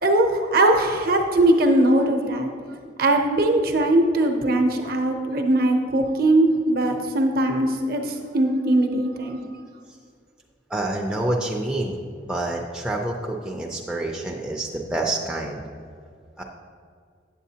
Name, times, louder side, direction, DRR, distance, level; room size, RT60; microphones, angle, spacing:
voice 1, 0.0-2.5 3.0-9.4, right 1 dB, 50° right, 4 dB, 0.7 m, -20 dB
voice 2, 10.7-15.6 16.4-16.5, right 1 dB, 5° right, -1 dB, 0.4 m, -28 dB
8.2 x 7.6 x 2.8 m, 2.1 s
head